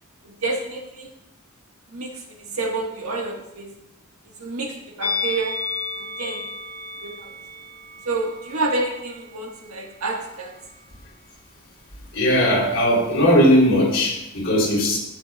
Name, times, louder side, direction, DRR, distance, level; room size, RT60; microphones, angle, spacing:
voice 1, 0.2-1.1 1.9-3.7 4.4-5.6 6.0-6.4 7.0-7.3 8.0-10.5, right 3 dB, 80° right, 0 dB, 1.6 m, -29 dB
Musical instrument, 5.0-10.2 10.5-10.7, left 4 dB, 20° left, 1.4 m, -33 dB
voice 2, 12.1-15.0, equal, 60° left, -4 dB, 3.4 m, -18 dB
13.5 x 7.3 x 2.4 m, 0.88 s
head